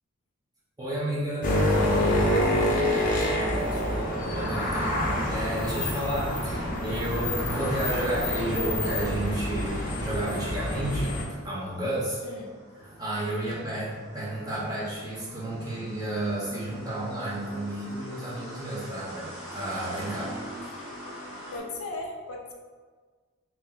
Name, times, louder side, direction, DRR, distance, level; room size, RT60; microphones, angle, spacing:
voice 1, 0.8-1.5 4.2-11.2 11.4-12.2 12.8-19.3 19.5-20.3, right 1 dB, 15° right, -8 dB, 0.9 m, -31 dB
sound 1, 1.4-11.2, left 1 dB, 40° left, 0.6 m, -27 dB
voice 2, 2.3-3.9 12.2-12.5 21.5-22.5, left 2 dB, 85° left, 1 dB, 0.6 m, -37 dB
sound 2, 3.0-21.6, equal, 45° right, 1.3 m, -46 dB
2.9 x 2.9 x 3.9 m, 1.5 s
head